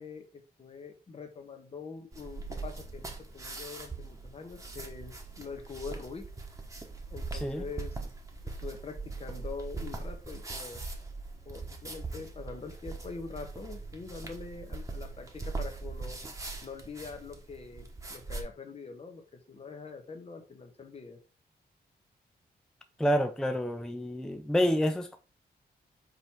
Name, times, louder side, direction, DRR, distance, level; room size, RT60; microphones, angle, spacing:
voice 1, 0.0-6.2 7.1-8.1 8.4-10.8 11.4-16.2 16.6-19.2 19.5-21.2, left 4 dB, 35° left, 1.2 m, -44 dB
sound 1, 2.1-18.4, right 3 dB, 20° right, 1.3 m, -41 dB
voice 2, 7.3-7.6 23.0-25.2, equal, 5° left, 0.5 m, -28 dB
5.4 x 4.5 x 4.4 m
cardioid pair, 105°, 17 cm